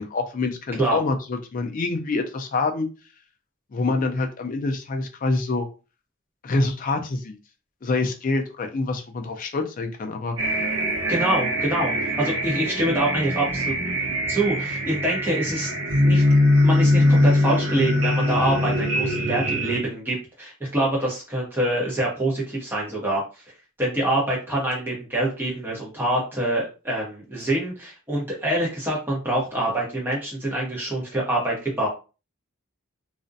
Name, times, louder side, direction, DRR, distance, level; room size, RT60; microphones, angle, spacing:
voice 1, 0.0-2.9 3.7-5.7 6.4-7.4 7.8-10.4, left 3 dB, 40° left, 5 dB, 0.4 m, -26 dB
sound 1, 10.4-19.8, left 1 dB, 70° right, 0.8 m, -22 dB
voice 2, 11.1-13.7 14.3-15.7 16.0-16.2 16.6-23.2 23.8-31.9, right 1 dB, 10° right, -5 dB, 0.8 m, -25 dB
2.4 x 2.1 x 2.5 m, 0.32 s
head